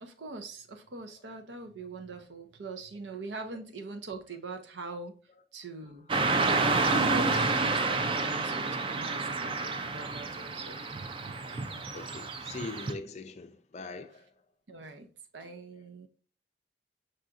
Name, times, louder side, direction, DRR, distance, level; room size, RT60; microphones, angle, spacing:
voice 1, 0.0-5.2 5.5-6.1 6.5-10.8 14.7-15.1 15.3-16.1, right 3 dB, 80° right, 0.6 m, -43 dB
Car passing by / Traffic noise roadway noise, 6.1-12.9, right 3 dB, 30° right, 0.4 m, -29 dB
voice 2, 11.5-14.3, left 3 dB, 40° left, 0.4 m, -42 dB
5.5 x 3.9 x 2.4 m
head